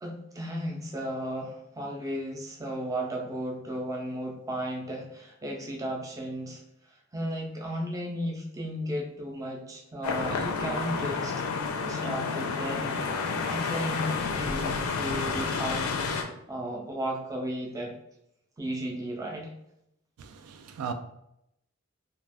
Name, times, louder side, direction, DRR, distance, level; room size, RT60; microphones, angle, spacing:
voice 1, 0.0-6.6 7.1-11.4 11.8-17.9 18.6-19.5, equal, 15° right, 0.4 m, -35 dB
sound 1, 10.0-16.2, left 4 dB, 70° left, 0.4 m, -30 dB
voice 2, 20.2-20.9, right 6 dB, 85° right, 0.3 m, -37 dB
2.3 x 2.3 x 3.3 m
head